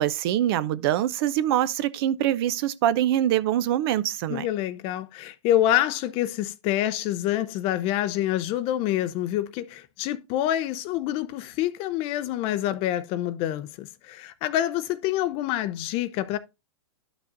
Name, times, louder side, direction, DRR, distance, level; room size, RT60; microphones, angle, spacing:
voice 1, 0.0-4.5, right 12 dB, 50° right, 0.6 m, -24 dB
voice 2, 4.3-16.4, left 13 dB, 35° left, 0.6 m, -27 dB
11.5 x 6.1 x 2.5 m
hypercardioid pair, 125°, 16 cm